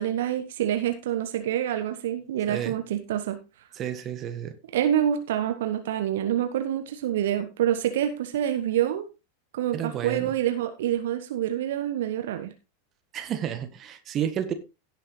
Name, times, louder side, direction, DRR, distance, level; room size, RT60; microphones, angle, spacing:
voice 1, 0.0-3.4 4.7-9.1 9.5-12.5, right 11 dB, 55° right, 1.2 m, -27 dB
voice 2, 3.7-4.5 9.7-10.3 13.1-14.5, right 9 dB, 30° right, 1.5 m, -31 dB
17.0 x 6.5 x 3.2 m
figure-of-eight pair, 90°, 0 cm